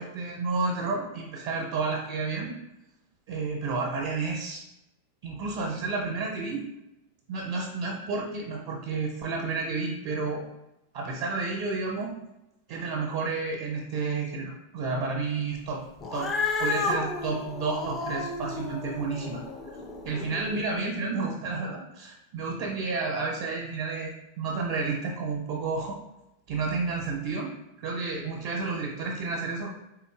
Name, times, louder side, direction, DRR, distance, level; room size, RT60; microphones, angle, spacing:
voice 1, 0.0-2.5 3.3-4.6 5.2-6.6 7.3-10.4 10.9-12.1 12.7-15.8 16.1-16.3 16.6-19.4 20.0-26.0 26.5-27.5 27.8-29.7, right 4 dB, 50° right, -2 dB, 0.7 m, -31 dB
Cat, 16.0-20.6, left 3 dB, 20° left, 0.4 m, -32 dB
4.1 x 3.3 x 2.5 m, 0.92 s
figure-of-eight pair, 90°, 0 cm